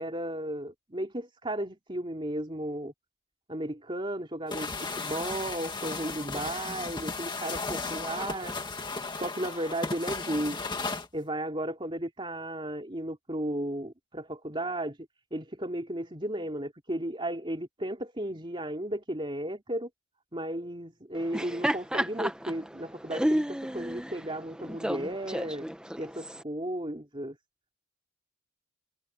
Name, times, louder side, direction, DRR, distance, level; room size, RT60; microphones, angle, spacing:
voice 1, 0.0-2.9 3.5-8.6 9.1-10.6 11.1-15.0 15.3-19.9 20.3-25.7 26.0-27.4, right 1 dB, 25° right, 3.4 m, -34 dB
sound 1, 4.5-11.1, left 3 dB, 20° left, 2.1 m, -35 dB
Laughter, 21.2-26.4, equal, 5° right, 1.1 m, -32 dB
head